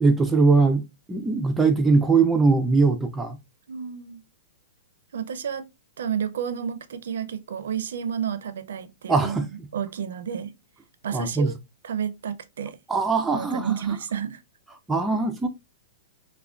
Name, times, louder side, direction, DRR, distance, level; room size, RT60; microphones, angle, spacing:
voice 1, 0.0-0.8 1.1-3.4 9.1-9.5 11.1-11.5 12.9-13.7 14.9-15.5, right 4 dB, 10° right, 0.3 m, -21 dB
voice 2, 3.7-4.2 5.1-5.6 6.0-9.4 9.7-10.5 11.0-11.6 11.8-12.8 13.3-14.4, right 8 dB, 80° right, 0.4 m, -30 dB
3.4 x 2.1 x 2.3 m
hypercardioid pair, 155°, 0 cm